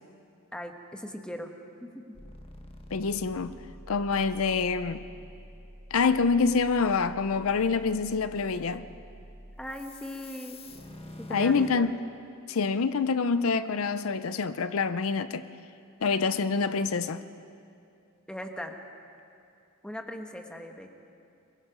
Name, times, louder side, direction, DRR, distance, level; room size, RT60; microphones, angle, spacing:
voice 1, 0.5-1.5 1.8-2.0 9.6-10.6 11.2-11.9 18.3-18.8 19.8-20.9, equal, 5° left, 1.3 m, -39 dB
sound 1, 2.1-11.7, left 1 dB, 25° left, 1.5 m, -47 dB
voice 2, 2.9-3.5 3.9-5.0 5.9-8.9 11.3-11.9 12.5-15.5 16.0-17.2, left 4 dB, 75° left, 0.6 m, -26 dB
23.5 x 21.5 x 5.2 m
head